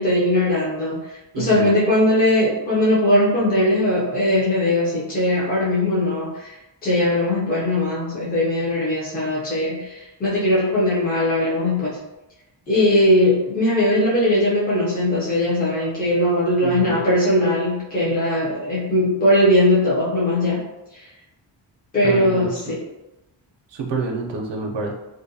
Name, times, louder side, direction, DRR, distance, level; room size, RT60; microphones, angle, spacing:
voice 1, 0.0-6.5 6.8-12.0 12.7-20.7 20.9-21.1 21.9-22.8, left 1 dB, 20° left, -7 dB, 0.6 m, -20 dB
voice 2, 1.3-1.7 16.6-17.0 22.0-22.5 23.7-24.9, right 4 dB, 75° right, 1 dB, 0.6 m, -28 dB
2.5 x 2.2 x 2.6 m, 0.96 s
wide cardioid pair, 165°, 44 cm